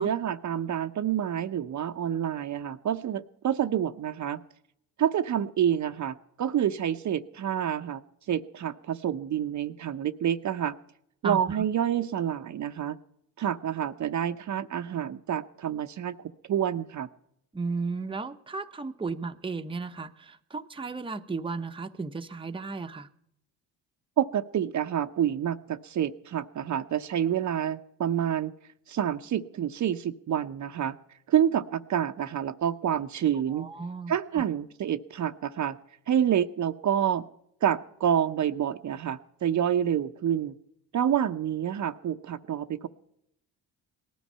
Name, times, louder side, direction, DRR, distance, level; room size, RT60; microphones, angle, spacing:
voice 1, 0.0-4.4 5.0-8.0 8.3-10.8 11.2-13.0 13.4-16.2 16.5-17.1 24.2-28.5 28.9-31.0 31.3-33.7 34.1-35.8 36.1-37.2 37.6-40.5 40.9-42.9, right 9 dB, 45° right, 8 dB, 0.8 m, -28 dB
voice 2, 11.2-11.7 17.5-23.1 33.5-34.4, right 4 dB, 15° right, 7 dB, 0.9 m, -34 dB
18.5 x 12.5 x 5.6 m, 0.77 s
supercardioid pair, 70°, 40 cm